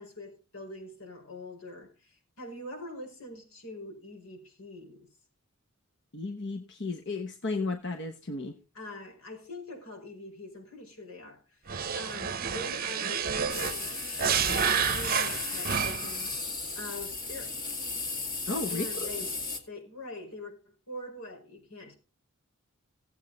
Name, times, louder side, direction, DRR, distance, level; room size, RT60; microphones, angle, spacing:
voice 1, 0.0-5.1 8.7-14.0 14.3-16.3 16.7-17.5 18.7-19.4 19.7-21.9, left 1 dB, 80° left, 5.0 m, -43 dB
voice 2, 6.1-8.6 18.5-19.1, left 3 dB, 55° left, 1.1 m, -34 dB
sound 1, 11.7-16.2, right 7 dB, 40° right, 0.8 m, -30 dB
sound 2, 13.5-19.6, left 3 dB, 40° left, 2.3 m, -35 dB
16.5 x 8.2 x 3.9 m
head